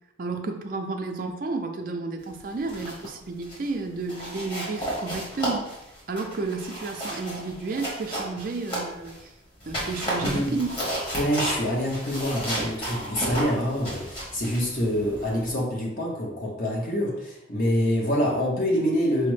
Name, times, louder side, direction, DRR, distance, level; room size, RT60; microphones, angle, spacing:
voice 1, 0.2-5.7 6.1-9.3 9.7-10.8, right 3 dB, 50° right, 5 dB, 0.4 m, -32 dB
sound 1, 2.5-3.1 3.4-3.7 4.1-9.2 9.6-15.5, right 1 dB, 30° left, 1.1 m, -33 dB
voice 2, 10.2-10.6 11.1-19.3, equal, 45° left, -2 dB, 0.8 m, -26 dB
4.8 x 2.1 x 3.1 m, 0.90 s
head